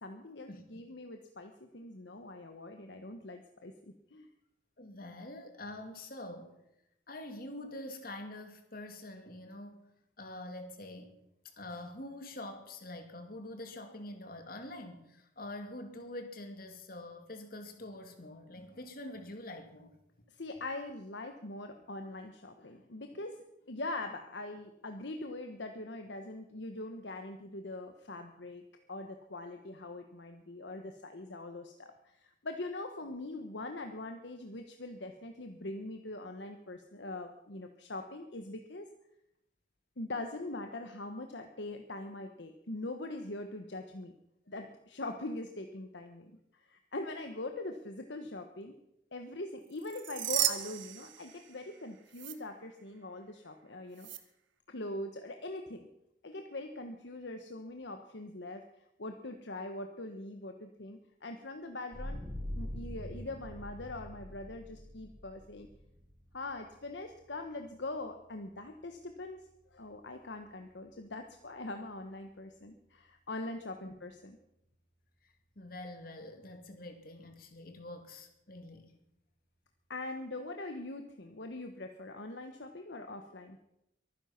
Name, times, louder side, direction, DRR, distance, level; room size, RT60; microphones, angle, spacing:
voice 1, 0.0-3.7 4.1-4.3 20.3-23.4 23.7-28.6 28.9-38.9 40.0-44.1 44.5-48.7 49.1-54.1 54.7-55.9 56.2-58.6 59.0-62.2 62.5-65.7 66.3-74.4 79.9-83.6, left 2 dB, 65° left, 6 dB, 1.1 m, -42 dB
voice 2, 4.8-6.5 7.1-9.9 10.2-11.2 11.6-20.0 73.9-74.0 75.2-78.9, left 1 dB, 50° left, 6 dB, 2.4 m, -45 dB
sound 1, 49.8-51.8 52.1-52.3 54.0-54.2, right 12 dB, 90° right, 1.4 m, -34 dB
sound 2, 61.9-73.2, left 1 dB, 5° right, 6.4 m, -47 dB
23.0 x 10.0 x 5.9 m, 0.83 s
head